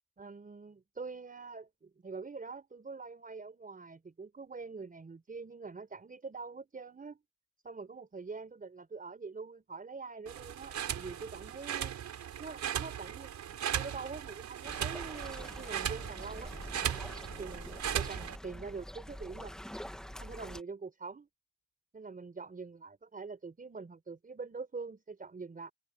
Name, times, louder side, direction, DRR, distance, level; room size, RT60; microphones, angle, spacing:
voice 1, 0.2-7.2 7.6-12.0 12.4-16.5 17.4-19.5 20.2-21.3 21.9-25.7, right 4 dB, 30° right, 4.6 m, -44 dB
sound 1, 10.3-18.4, right 10 dB, 65° right, 5.1 m, -38 dB
sound 2, 14.6-20.6, equal, ahead, 1.8 m, -46 dB
open air
cardioid pair, 90°, 30 cm